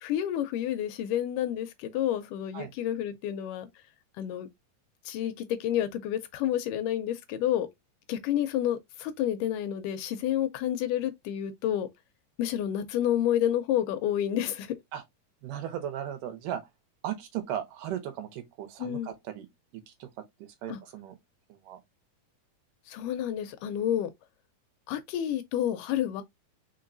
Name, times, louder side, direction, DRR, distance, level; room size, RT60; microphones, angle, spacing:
voice 1, 0.0-3.7 4.2-4.5 5.1-7.7 8.1-11.9 12.4-14.7 18.8-19.1 20.7-20.8 22.9-24.1 24.9-26.2, left 11 dB, 80° left, 2.0 m, -29 dB
voice 2, 15.4-16.6 17.0-19.5 19.7-20.1 20.4-21.2 21.5-21.8, right 10 dB, 75° right, 2.4 m, -37 dB
4.5 x 4.4 x 2.6 m
omnidirectional pair, 4.0 m